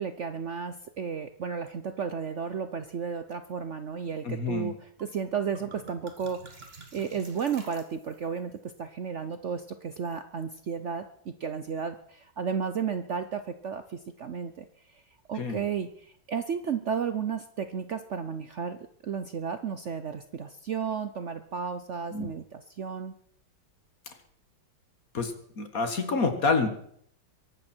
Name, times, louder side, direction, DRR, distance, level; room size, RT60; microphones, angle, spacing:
voice 1, 0.0-6.6 6.9-15.0 15.3-18.8 19.0-23.1, right 6 dB, 55° right, 10 dB, 0.9 m, -33 dB
voice 2, 4.2-4.7 15.4-15.6 22.1-22.3 25.1-26.7, left 4 dB, 50° left, 7 dB, 2.1 m, -28 dB
sound 1, 5.0-5.1 5.3-8.4, right 3 dB, 35° right, 2.0 m, -49 dB
22.5 x 12.0 x 4.4 m, 0.65 s
omnidirectional pair, 1.9 m